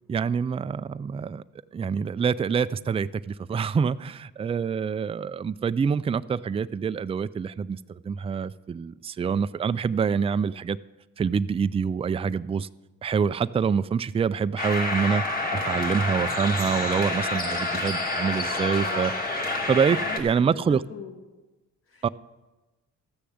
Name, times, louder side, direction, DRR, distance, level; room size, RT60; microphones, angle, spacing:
voice 1, 0.1-1.4 1.7-10.8 11.2-12.7 13.0-15.3 15.5-19.1 19.7-20.8 22.0-22.1, right 6 dB, 20° right, 0.3 m, -26 dB
sound 1, 14.6-20.2, left 2 dB, 25° left, 2.3 m, -28 dB
voice 2, 20.1-21.2 21.9-22.0, left 7 dB, 40° left, 2.2 m, -42 dB
13.0 x 6.7 x 7.9 m
cardioid pair, 80°, 33 cm